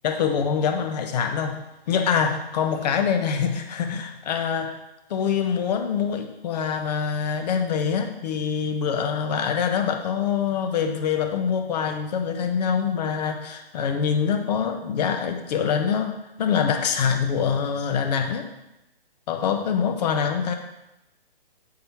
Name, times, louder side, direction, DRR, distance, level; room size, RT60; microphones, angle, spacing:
voice 1, 0.0-4.8 5.1-18.5 19.3-20.5, left 7 dB, 45° left, 6 dB, 0.9 m, -25 dB
7.6 x 5.7 x 4.4 m, 0.92 s
hypercardioid pair, 140°, 30 cm